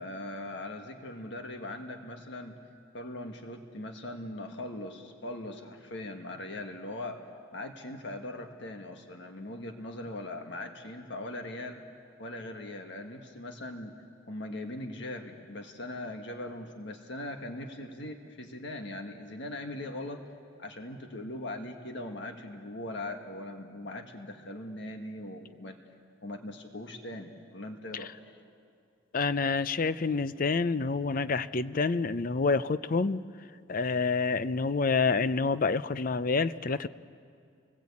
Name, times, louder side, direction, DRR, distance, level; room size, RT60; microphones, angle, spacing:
voice 1, 0.0-2.6 2.9-7.2 7.5-11.8 12.2-13.9 14.3-20.2 20.6-25.8 26.2-28.4, left 1 dB, 60° left, 4 dB, 1.6 m, -40 dB
voice 2, 29.1-33.2 33.7-36.9, left 4 dB, 45° left, 14 dB, 0.6 m, -28 dB
29.5 x 20.0 x 8.5 m, 2.4 s
head